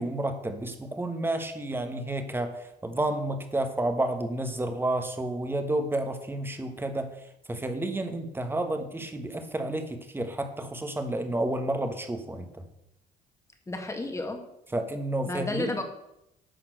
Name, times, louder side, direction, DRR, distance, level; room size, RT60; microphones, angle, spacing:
voice 1, 0.0-12.7 14.7-15.8, right 1 dB, 15° right, 7 dB, 1.3 m, -31 dB
voice 2, 13.7-14.4 15.3-15.8, left 2 dB, 15° left, 4 dB, 1.8 m, -32 dB
11.5 x 4.4 x 7.7 m, 0.83 s
cardioid pair, 110°, 17 cm